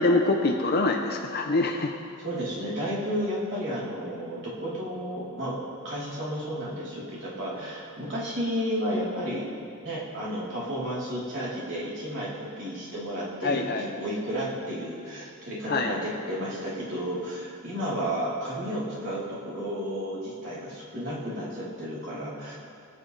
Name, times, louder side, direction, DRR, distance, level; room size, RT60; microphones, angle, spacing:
voice 1, 0.0-1.9 13.4-13.9 15.7-16.0, left 2 dB, 45° left, 2 dB, 0.7 m, -24 dB
voice 2, 2.2-5.6 5.8-9.5 9.8-22.6, equal, 55° right, -8 dB, 3.6 m, -32 dB
23.5 x 8.5 x 3.3 m, 2.4 s
head